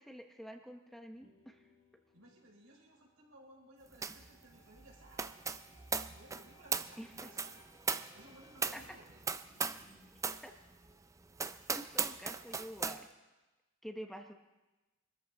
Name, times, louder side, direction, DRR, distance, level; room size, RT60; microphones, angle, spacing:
voice 1, 0.0-1.6 7.0-7.3 8.7-8.8 10.4-10.5 11.7-13.1 13.8-14.3, equal, ahead, 3 dB, 0.8 m, -47 dB
sound 1, 1.0-10.2, left 1 dB, 40° left, 2.8 m, -68 dB
voice 2, 2.1-7.6 8.1-9.2 11.7-12.0, right 1 dB, 85° right, -3 dB, 5.2 m, -60 dB
sound 2, 4.0-4.3 4.5-9.9 10.2-10.5 10.9-11.0 11.4-13.0, right 5 dB, 15° right, 0.4 m, -38 dB
24.5 x 14.0 x 3.8 m, 1.1 s
head